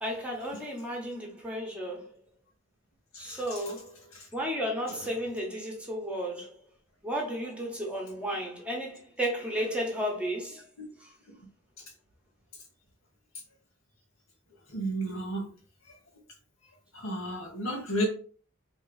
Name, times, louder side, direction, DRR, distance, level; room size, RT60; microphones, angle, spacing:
voice 1, 0.0-2.1 3.2-4.0 4.3-6.6 7.0-10.7 11.0-11.1, equal, 5° right, 1.0 m, -33 dB
voice 2, 3.1-3.6 4.1-4.3 4.9-5.1 10.8-10.9 14.7-15.5 16.9-18.1, right 1 dB, 85° left, 1.9 m, -33 dB
3.6 x 3.0 x 4.7 m
head